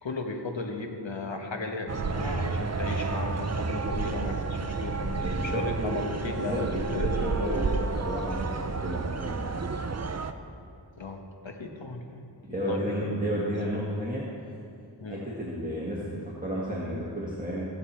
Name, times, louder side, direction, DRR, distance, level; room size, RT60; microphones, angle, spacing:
voice 1, 0.0-7.8 11.0-12.2 12.5-13.1 15.0-15.2, left 3 dB, 85° left, 3 dB, 1.2 m, -35 dB
sound 1, 1.9-10.3, right 4 dB, 35° right, 0.6 m, -31 dB
voice 2, 5.2-6.0 6.3-9.5 12.4-14.2 15.1-17.7, equal, 20° right, -6 dB, 1.7 m, -32 dB
16.5 x 7.6 x 4.4 m, 2.5 s
wide cardioid pair, 55°, 44 cm